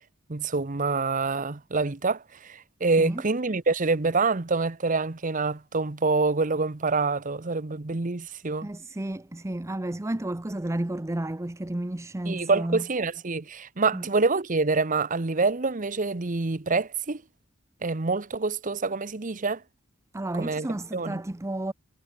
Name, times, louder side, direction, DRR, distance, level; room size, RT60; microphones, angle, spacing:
voice 1, 0.3-8.7 12.3-17.2 17.8-19.6 20.4-20.7 20.9-21.2, right 3 dB, 40° right, 1.0 m, -26 dB
voice 2, 8.6-12.9 13.9-14.1 20.1-21.7, right 1 dB, 15° right, 0.6 m, -32 dB
head